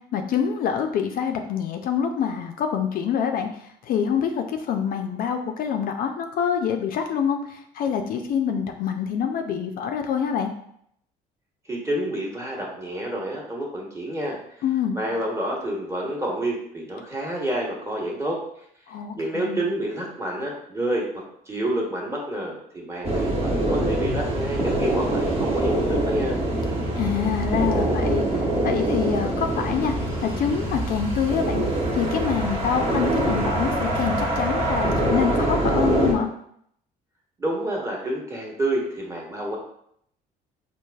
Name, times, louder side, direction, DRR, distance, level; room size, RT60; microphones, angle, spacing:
voice 1, 0.1-10.5 14.6-15.0 18.9-19.6 27.0-29.9 30.2-31.6 31.9-36.3, left 7 dB, 60° left, 5 dB, 0.4 m, -26 dB
voice 2, 11.7-14.4 14.9-18.4 19.1-26.4 37.4-39.6, right 1 dB, 15° right, -2 dB, 1.0 m, -28 dB
sound 1, 23.0-36.1, right 1 dB, 35° right, 1.0 m, -24 dB
4.6 x 2.4 x 2.3 m, 0.70 s
cardioid pair, 110°, 17 cm